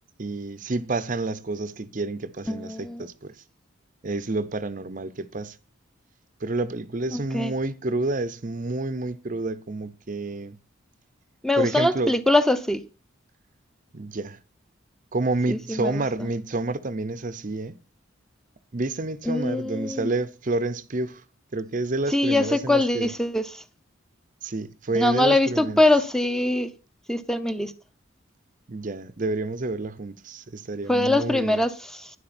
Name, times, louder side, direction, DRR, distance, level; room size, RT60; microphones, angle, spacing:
voice 1, 0.2-3.3 4.0-5.6 6.4-10.6 11.6-12.1 13.9-14.4 15.1-17.7 18.7-21.2 21.5-23.1 24.4-25.8 28.7-31.6, right 2 dB, 40° right, 0.7 m, -29 dB
voice 2, 2.5-3.1 7.1-7.5 11.4-12.8 15.5-16.3 19.3-20.1 22.1-23.6 24.9-26.7 27.1-27.7 30.9-32.1, left 2 dB, ahead, 0.8 m, -23 dB
12.0 x 10.5 x 4.3 m
head